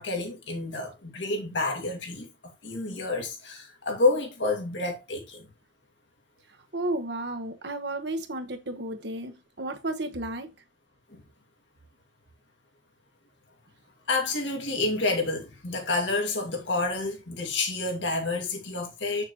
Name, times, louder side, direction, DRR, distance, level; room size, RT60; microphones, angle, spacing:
voice 1, 0.0-2.3 2.6-5.5 14.1-19.2, left 3 dB, 75° left, 2.3 m, -29 dB
voice 2, 6.7-10.5, right 1 dB, 65° right, 1.2 m, -33 dB
7.3 x 6.7 x 3.0 m
head